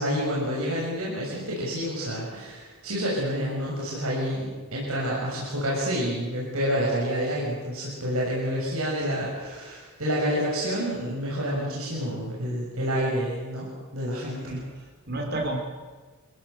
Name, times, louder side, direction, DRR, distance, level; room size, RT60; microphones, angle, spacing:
voice 1, 0.0-14.6, equal, 70° right, -5 dB, 6.8 m, -28 dB
voice 2, 14.4-15.6, right 1 dB, 45° right, 2 dB, 4.9 m, -32 dB
27.5 x 16.5 x 7.9 m, 1.4 s
head